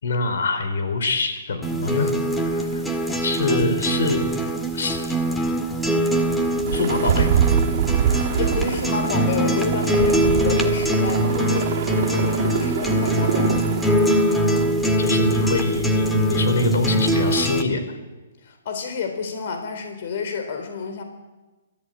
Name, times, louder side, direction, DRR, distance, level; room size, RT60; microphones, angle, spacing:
voice 1, 0.0-2.1 2.5-2.8 3.2-4.2 4.7-5.2 6.7-7.3 15.0-17.8, left 3 dB, 75° left, 8 dB, 4.2 m, -24 dB
sound 1, 1.6-17.6, right 1 dB, 5° left, 1.8 m, -22 dB
sound 2, 6.6-17.1, right 8 dB, 55° right, 2.7 m, -26 dB
voice 2, 8.3-13.8 18.4-21.0, left 5 dB, 55° left, 6 dB, 3.8 m, -30 dB
28.0 x 14.0 x 9.0 m, 1.2 s
hypercardioid pair, 145°, 0 cm